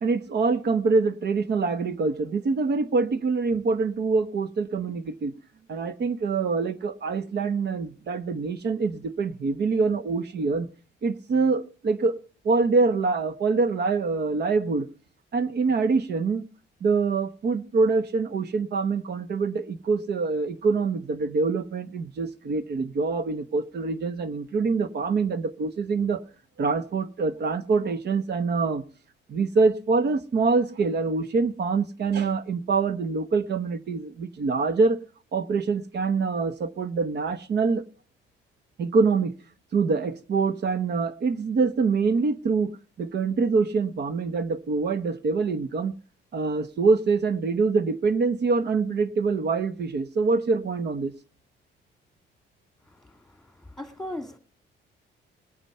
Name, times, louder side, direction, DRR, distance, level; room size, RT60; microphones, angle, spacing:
voice 1, 0.0-5.3 5.7-10.7 11.0-12.2 12.4-14.9 15.3-16.4 16.8-26.2 26.6-28.8 29.3-35.0 35.3-37.8 38.8-39.3 39.7-46.0 46.3-51.1, right 4 dB, 55° right, 1.1 m, -25 dB
voice 2, 52.8-54.4, left 1 dB, ahead, 2.1 m, -39 dB
19.5 x 8.9 x 5.5 m
cardioid pair, 90°, 20 cm